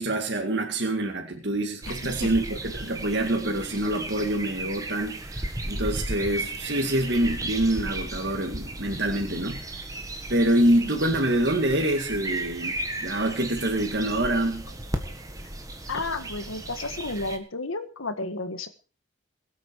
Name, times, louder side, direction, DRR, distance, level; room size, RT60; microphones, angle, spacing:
voice 1, 0.0-9.7 10.3-14.7, right 1 dB, 55° right, 2 dB, 2.2 m, -26 dB
sound 1, 1.8-17.4, right 2 dB, 15° right, 1.5 m, -35 dB
voice 2, 15.9-18.7, left 2 dB, 85° left, 10 dB, 1.8 m, -32 dB
22.0 x 8.5 x 4.7 m, 0.36 s
head